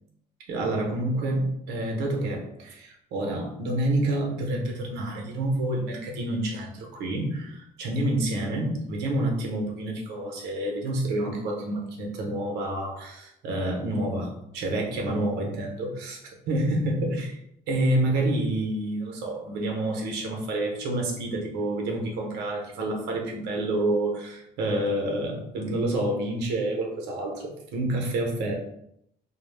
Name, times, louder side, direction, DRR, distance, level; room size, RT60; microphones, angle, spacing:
voice 1, 0.5-16.2 16.5-17.4 17.7-28.5, right 1 dB, 90° right, 1 dB, 0.7 m, -28 dB
2.2 x 2.0 x 3.2 m, 0.76 s
cardioid pair, 110°, 17 cm